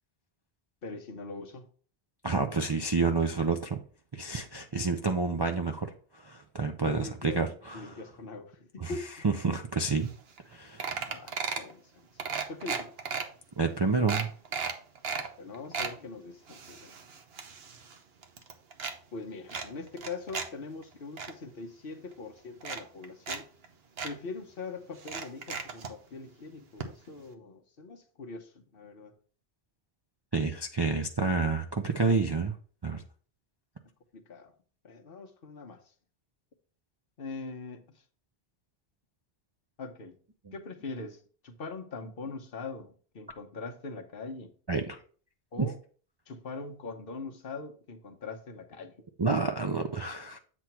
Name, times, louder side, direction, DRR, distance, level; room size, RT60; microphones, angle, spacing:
voice 1, 0.8-1.7 6.8-9.2 11.1-11.9 12.2-12.9 15.4-16.9 19.1-23.5 24.0-29.1 34.1-34.5 34.8-35.8 37.2-37.8 39.8-40.1 40.5-44.5 45.5-45.8 46.3-49.1, left 3 dB, 60° left, 1.0 m, -42 dB
voice 2, 2.2-3.8 4.1-5.9 6.2-8.0 8.8-8.9 9.2-10.1 10.5-11.1 13.6-14.3 30.3-32.6 32.8-33.0 44.7-45.0 45.6-45.7 49.2-50.4, right 4 dB, 35° right, 0.4 m, -29 dB
sound 1, 10.1-10.2 10.4-10.5 10.8-11.7 12.2-13.2 13.7-13.8 14.1-15.3 15.5-15.9 16.5-18.0 18.2-18.9 19.5-20.5 20.8-21.3 22.1-22.2 22.6-23.4 23.6-23.7 24.0-24.1 25.0-25.9 26.8-26.9 27.2-27.3, right 5 dB, 65° right, 1.1 m, -35 dB
8.1 x 3.0 x 5.7 m
omnidirectional pair, 1.1 m